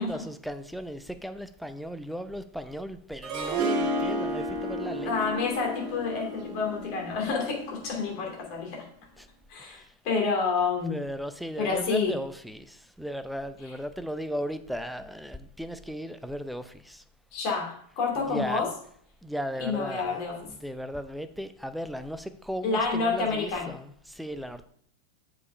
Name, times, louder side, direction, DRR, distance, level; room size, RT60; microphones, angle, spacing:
voice 1, 0.0-5.1 9.2-9.3 9.6-9.9 10.9-17.0 18.3-18.6 19.2-24.6, equal, ahead, 11 dB, 0.5 m, -36 dB
Harp, 3.2-8.3, right 1 dB, 40° right, 1.4 m, -32 dB
voice 2, 5.0-8.8 9.5-11.0 11.6-12.1 17.3-18.7 19.6-20.4 22.6-23.7, left 4 dB, 45° left, 0 dB, 2.7 m, -29 dB
7.1 x 4.9 x 5.4 m, 0.63 s
figure-of-eight pair, 90°, 0 cm